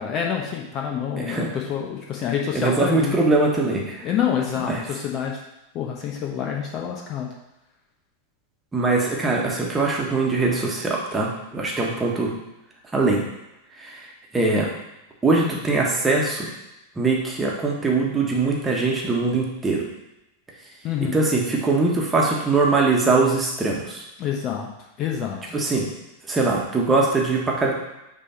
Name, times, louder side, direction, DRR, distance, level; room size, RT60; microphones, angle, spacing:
voice 1, 0.0-3.2 4.0-5.4 5.7-7.3 20.8-21.1 24.2-24.7 25.0-25.4, left 8 dB, 35° left, 0 dB, 1.1 m, -27 dB
voice 2, 1.2-1.5 2.5-4.1 4.7-4.8 8.7-12.4 12.9-13.2 13.8-14.1 14.3-14.7 15.2-16.5 17.0-19.9 21.0-24.0 25.5-25.9 26.3-27.7, right 3 dB, 15° right, -2 dB, 1.5 m, -22 dB
8.8 x 3.5 x 4.4 m, 0.94 s
figure-of-eight pair, 90°, 0 cm